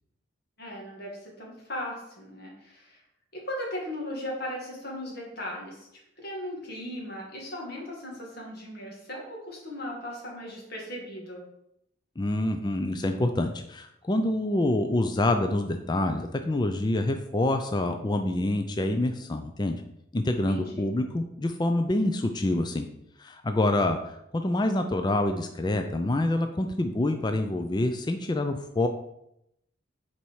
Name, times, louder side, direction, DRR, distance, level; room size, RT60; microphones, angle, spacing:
voice 1, 0.6-3.0 3.3-5.9 6.2-11.4 20.5-20.9, left 1 dB, 50° left, -2 dB, 2.2 m, -37 dB
voice 2, 12.2-19.8 20.1-22.9 23.2-28.9, left 1 dB, 20° left, 6 dB, 0.4 m, -26 dB
7.0 x 4.5 x 4.7 m, 0.80 s
head